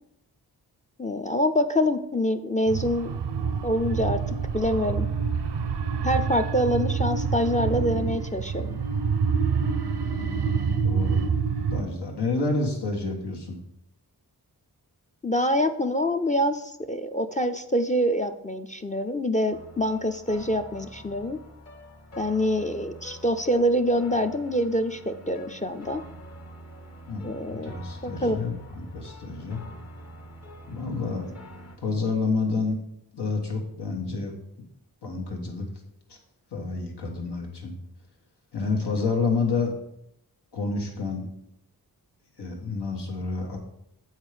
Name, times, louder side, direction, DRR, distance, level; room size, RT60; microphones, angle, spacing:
voice 1, 1.0-3.2 3.6-4.2 4.5-5.1 6.0-8.8 15.2-21.4 22.2-26.0 27.2-28.4, equal, 20° left, 9 dB, 0.4 m, -25 dB
sound 1, 2.7-11.8, right 6 dB, 90° right, 0.6 m, -27 dB
voice 2, 10.8-11.3 11.7-13.6 27.1-29.6 30.7-31.4 31.8-32.8 33.1-34.7 35.0-35.7 36.1-36.2 36.5-37.7 38.5-39.7 40.5-41.3 42.4-43.6, left 3 dB, 90° left, 0 dB, 1.5 m, -29 dB
sound 2, 19.5-31.8, equal, 40° left, 1.0 m, -46 dB
8.1 x 4.6 x 4.9 m, 0.79 s
wide cardioid pair, 70°, 40 cm